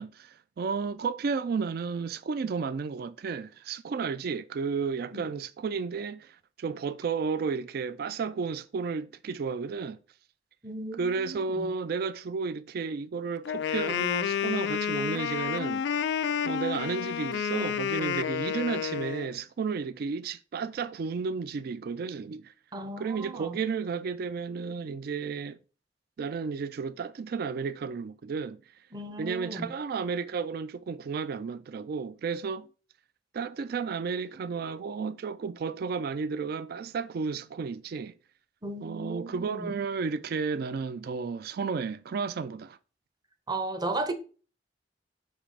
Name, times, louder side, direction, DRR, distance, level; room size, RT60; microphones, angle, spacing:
voice 1, 0.0-10.0 11.0-15.8 16.4-22.5 23.0-25.6 26.2-28.6 29.2-32.7 33.3-38.1 38.8-42.8, right 5 dB, 60° right, 0.3 m, -32 dB
voice 2, 10.6-11.7 22.7-23.6 28.9-29.7 38.6-39.7 43.5-44.1, right 2 dB, 25° right, 0.8 m, -35 dB
Wind instrument woodwind instrument, 13.4-19.3, left 8 dB, 70° left, 0.3 m, -30 dB
7.1 x 3.3 x 4.9 m
head